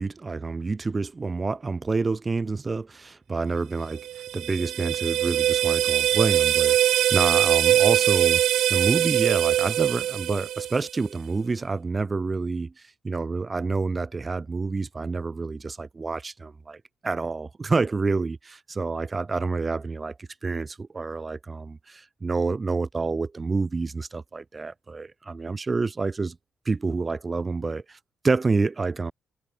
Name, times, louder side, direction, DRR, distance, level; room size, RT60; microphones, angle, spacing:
voice 1, 0.0-4.0 4.3-8.4 8.7-26.3 26.6-28.0 28.2-29.1, right 4 dB, 25° right, 1.2 m, -28 dB
sound 1, 3.9-11.0, right 12 dB, 80° right, 0.9 m, -22 dB
cardioid pair, 90°, 0 cm